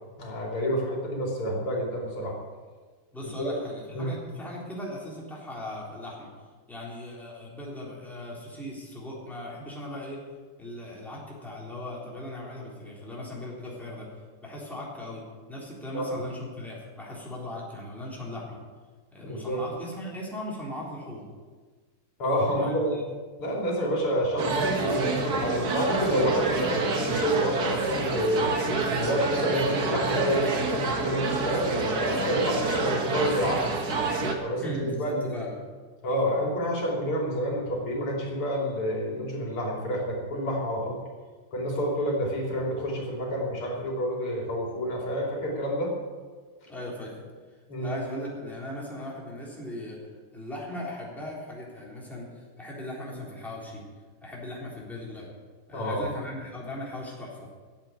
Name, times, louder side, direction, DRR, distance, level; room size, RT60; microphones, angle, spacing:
voice 1, 0.2-2.4 3.4-3.6 3.9-4.2 15.9-16.1 19.2-19.6 22.2-23.0 23.4-28.5 29.0-33.8 34.4-35.4 36.0-41.0 41.5-45.9 47.7-48.0 55.7-56.1, equal, 80° left, -2 dB, 4.0 m, -28 dB
voice 2, 3.1-6.3 6.7-10.2 10.6-14.1 14.4-15.2 15.5-18.6 19.1-21.3 22.6-23.0 34.6-35.5 46.7-47.2 47.8-53.8 54.2-55.3 55.7-57.5, left 1 dB, ahead, -5 dB, 3.6 m, -38 dB
sound 1, 24.4-34.3, right 3 dB, 50° right, 1.8 m, -28 dB
14.0 x 7.9 x 8.9 m, 1.4 s
omnidirectional pair, 2.4 m